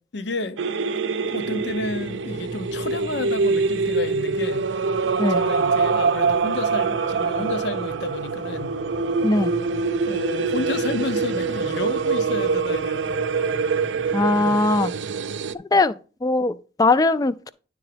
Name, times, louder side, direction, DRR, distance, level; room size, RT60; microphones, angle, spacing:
voice 1, 0.1-0.6 1.3-4.7 5.3-8.8 10.1-13.2 14.4-14.6, left 3 dB, 70° left, 0.7 m, -31 dB
sound 1, 0.6-15.5, right 4 dB, 90° right, 0.5 m, -24 dB
sound 2, 1.2-15.0, right 2 dB, 35° right, 0.7 m, -41 dB
voice 2, 9.2-9.6 14.1-14.9 15.7-16.0 16.2-17.5, left 2 dB, 20° left, 0.3 m, -20 dB
10.5 x 3.6 x 5.0 m
head